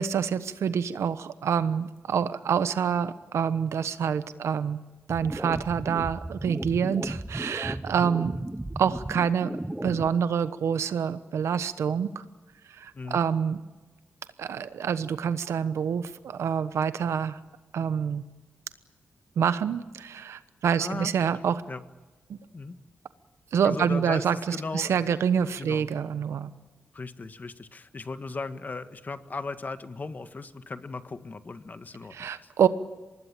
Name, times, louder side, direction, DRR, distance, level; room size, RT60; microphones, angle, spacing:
voice 1, 0.0-4.8 5.1-8.4 8.8-9.5 9.8-12.2 12.7-13.6 14.4-17.4 17.7-18.2 19.4-21.6 22.3-22.4 23.5-26.5 32.1-32.7, right 7 dB, 85° right, 13 dB, 1.1 m, -27 dB
sound 1, 5.1-10.1, right 1 dB, 15° right, 1.1 m, -35 dB
voice 2, 20.7-21.1 21.7-21.8 22.5-22.8 23.6-25.0 25.6-25.9 26.9-32.5, left 3 dB, 40° left, 10 dB, 1.6 m, -37 dB
24.5 x 20.0 x 9.0 m, 1.2 s
cardioid pair, 80°, 5 cm